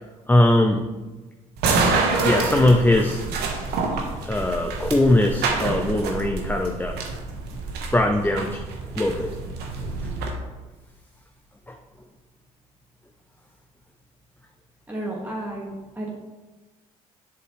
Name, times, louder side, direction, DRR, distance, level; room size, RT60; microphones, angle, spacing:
voice 1, 0.3-0.8 2.2-3.2 4.2-7.0 7.9-8.6 9.0-9.3 9.8-9.9 11.7-11.8, left 1 dB, 10° left, 3 dB, 0.7 m, -20 dB
sound 1, 1.6-10.3, right 4 dB, 70° right, 1.2 m, -27 dB
voice 2, 14.9-16.1, right 1 dB, 10° right, -3 dB, 1.8 m, -32 dB
7.8 x 7.1 x 3.2 m, 1.2 s
hypercardioid pair, 55°, 18 cm